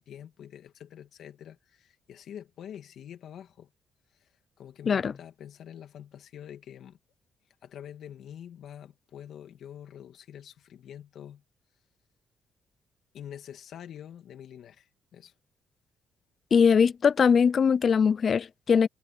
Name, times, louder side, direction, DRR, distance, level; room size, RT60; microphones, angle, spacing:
voice 1, 0.0-3.7 4.2-4.3 4.6-7.0 7.6-11.4 13.1-15.3, left 9 dB, 70° left, 2.5 m, -46 dB
voice 2, 16.5-18.9, left 6 dB, 50° left, 0.5 m, -21 dB
cardioid pair, 90°, 0 cm